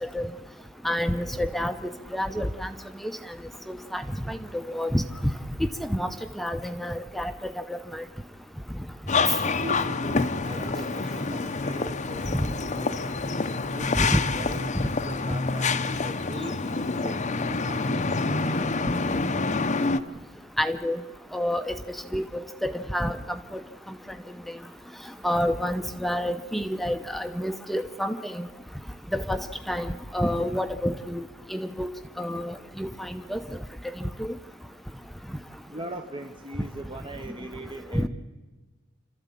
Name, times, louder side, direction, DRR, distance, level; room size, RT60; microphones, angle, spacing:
voice 1, 0.8-1.7 2.1-2.7 3.7-5.0 5.8-6.1 6.4-8.0 12.3-12.5 14.0-14.2 20.6-21.0 21.3-21.7 22.1-23.6 25.2-28.5 29.1-31.2 31.5-31.9 32.2-33.4 34.2-34.3 37.9-38.1, equal, ahead, 9 dB, 0.8 m, -28 dB
sound 1, 9.1-20.0, left 3 dB, 35° left, 0.8 m, -27 dB
voice 2, 9.4-13.0 13.7-19.7 35.7-38.1, right 1 dB, 25° right, 5 dB, 0.9 m, -40 dB
28.0 x 13.5 x 8.5 m, 1.3 s
head